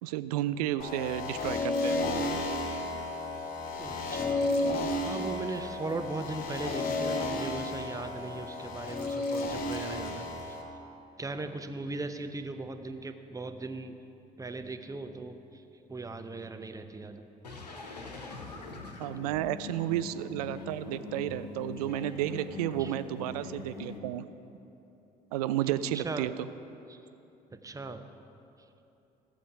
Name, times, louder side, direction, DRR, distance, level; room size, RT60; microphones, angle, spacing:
voice 1, 0.0-2.0 19.0-24.3 25.3-26.3, right 12 dB, 70° right, 13 dB, 0.4 m, -32 dB
sound 1, 0.8-10.6, left 2 dB, 45° left, 1.9 m, -32 dB
voice 2, 3.8-4.6 5.0-10.6 11.2-13.9 14.4-15.6 15.9-17.2 22.8-22.9 25.9-26.3 26.9-27.0 27.5-28.0, right 3 dB, 15° right, 8 dB, 0.8 m, -38 dB
sound 2, 17.4-24.0, left 3 dB, 80° left, 1.0 m, -43 dB
14.5 x 7.1 x 5.0 m, 2.9 s
figure-of-eight pair, 50°, 21 cm